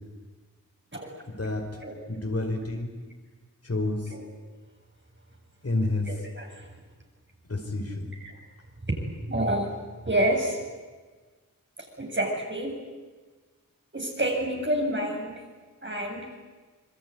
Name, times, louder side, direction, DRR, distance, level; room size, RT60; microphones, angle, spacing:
voice 1, 1.3-1.7 2.1-2.9 3.6-4.1 5.6-6.1 7.5-8.1, left 2 dB, 45° left, 4 dB, 4.9 m, -29 dB
voice 2, 6.1-6.5 8.2-8.3 8.9-9.7 10.0-10.6 12.0-12.7 13.9-15.4 15.8-16.3, right 1 dB, 35° right, 1 dB, 7.7 m, -28 dB
26.0 x 22.5 x 9.8 m, 1.4 s
wide cardioid pair, 70°, 33 cm